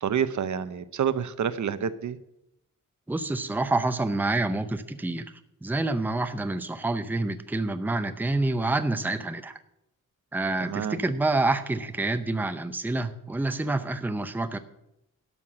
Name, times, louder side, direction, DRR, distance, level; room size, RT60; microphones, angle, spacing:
voice 1, 0.0-2.2 10.6-11.0, right 8 dB, 65° right, 13 dB, 0.8 m, -28 dB
voice 2, 3.1-5.3 5.6-9.6 10.3-14.6, right 2 dB, 5° right, 10 dB, 0.6 m, -27 dB
12.5 x 5.8 x 8.7 m, 0.83 s
wide cardioid pair, 160°, 32 cm